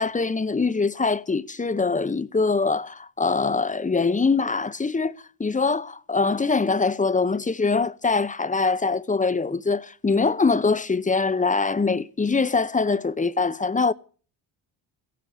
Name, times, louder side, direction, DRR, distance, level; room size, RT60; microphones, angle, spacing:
voice 1, 0.0-5.1 5.4-13.9, left 4 dB, 15° left, 0.7 m, -23 dB
15.5 x 9.4 x 8.3 m
cardioid pair, 85°, 45 cm